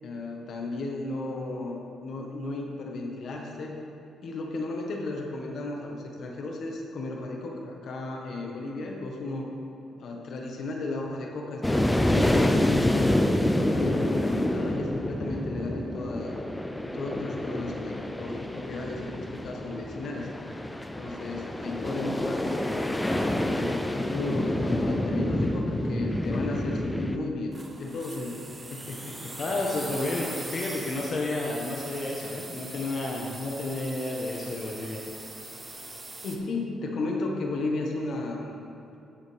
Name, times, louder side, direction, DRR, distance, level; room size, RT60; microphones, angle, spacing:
voice 1, 0.0-3.7 4.2-9.5 10.0-16.4 16.8-20.3 21.0-22.7 23.1-29.4 36.2-38.6, left 2 dB, 60° left, 0 dB, 1.4 m, -34 dB
sound 1, 11.6-27.2, left 1 dB, 10° left, 0.6 m, -27 dB
sound 2, 27.5-36.4, right 2 dB, 20° right, 1.1 m, -41 dB
voice 2, 29.4-35.0, left 2 dB, 45° left, -2 dB, 1.2 m, -31 dB
13.5 x 7.3 x 3.5 m, 2.7 s
cardioid pair, 90°, 0 cm